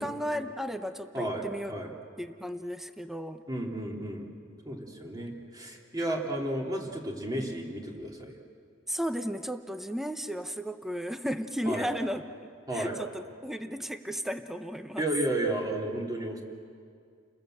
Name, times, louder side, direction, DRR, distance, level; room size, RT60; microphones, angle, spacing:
voice 1, 0.0-1.7 2.2-3.4 8.9-15.0, equal, ahead, 8 dB, 0.8 m, -34 dB
voice 2, 1.1-1.9 3.5-4.3 4.6-8.4 11.6-11.9 12.7-13.0 15.0-16.4, right 1 dB, 20° right, 0 dB, 3.1 m, -33 dB
30.0 x 20.5 x 7.9 m, 2.3 s
head